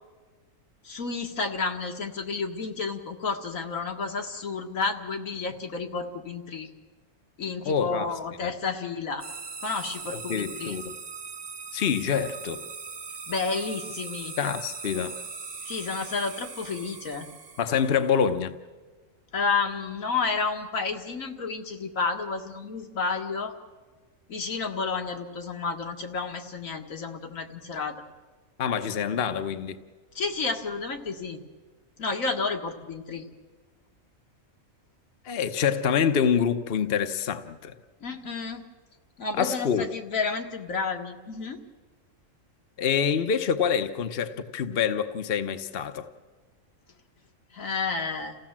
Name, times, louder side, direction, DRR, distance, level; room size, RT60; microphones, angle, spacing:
voice 1, 0.8-6.7 7.4-9.3 9.6-10.8 13.3-14.3 15.7-17.3 19.3-23.5 24.3-28.0 30.2-31.4 32.0-33.3 38.0-38.6 39.2-41.6 47.5-48.4, left 4 dB, 80° left, 2.1 m, -31 dB
voice 2, 7.7-8.1 8.4-8.5 10.1-11.0 11.7-12.6 14.4-15.2 17.6-18.6 28.6-29.8 35.2-37.7 39.4-39.9 42.8-46.1, left 7 dB, 50° left, 1.0 m, -26 dB
sound 1, 9.2-18.1, right 5 dB, 35° right, 0.9 m, -40 dB
28.5 x 16.0 x 7.4 m
omnidirectional pair, 1.4 m